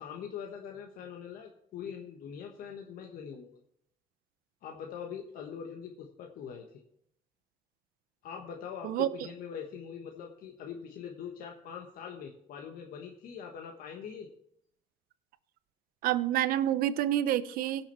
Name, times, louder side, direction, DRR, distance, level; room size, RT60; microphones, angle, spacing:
voice 1, 0.0-3.6 4.6-6.8 8.2-14.3, left 7 dB, 70° left, 2 dB, 1.3 m, -43 dB
voice 2, 16.0-17.9, right 12 dB, 70° right, 15 dB, 0.7 m, -28 dB
17.5 x 6.1 x 4.4 m, 0.70 s
cardioid pair, 95°, 15 cm